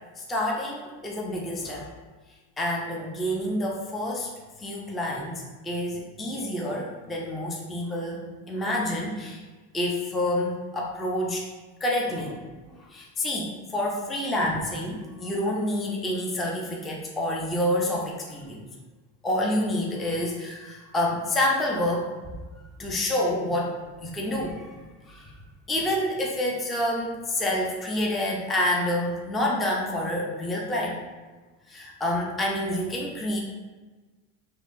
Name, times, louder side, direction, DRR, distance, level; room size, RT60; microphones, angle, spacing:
voice 1, 0.2-1.9 2.6-4.3 4.6-8.2 8.5-9.4 9.7-11.4 11.8-12.4 12.7-18.6 19.2-22.4 22.8-24.8 25.1-25.3 25.7-31.0 31.7-33.4, left 1 dB, ahead, -3 dB, 0.3 m, -28 dB
4.4 x 2.8 x 2.4 m, 1.3 s
supercardioid pair, 110°, 41 cm